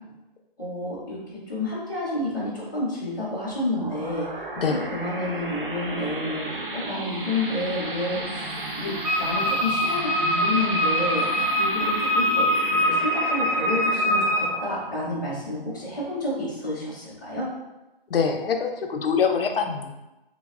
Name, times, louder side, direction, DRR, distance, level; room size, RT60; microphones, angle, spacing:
voice 1, 0.6-1.2 1.5-4.3 4.7-8.5 8.8-8.9 9.2-12.5 12.8-17.5, left 2 dB, 20° left, -10 dB, 0.5 m, -29 dB
sound 1, 3.4-16.6, right 2 dB, 60° right, 0.6 m, -34 dB
Wind instrument woodwind instrument, 9.0-14.5, equal, 35° right, 0.9 m, -23 dB
voice 2, 18.1-19.9, left 6 dB, 70° left, 4 dB, 0.5 m, -24 dB
3.3 x 2.0 x 2.3 m, 0.99 s
hypercardioid pair, 170°, 30 cm